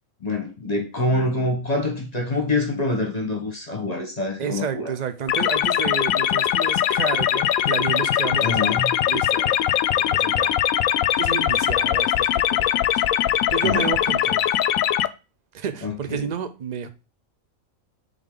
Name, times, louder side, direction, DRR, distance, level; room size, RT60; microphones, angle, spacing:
voice 1, 0.2-4.9 8.4-8.9 13.6-13.9 15.8-16.2, left 2 dB, 30° left, 1.2 m, -25 dB
voice 2, 4.4-8.7 9.1-10.5 11.2-14.6 15.5-16.9, right 7 dB, 45° right, 0.6 m, -31 dB
sound 1, 5.3-15.1, left 11 dB, 80° left, 1.0 m, -21 dB
9.1 x 3.9 x 3.8 m
omnidirectional pair, 1.5 m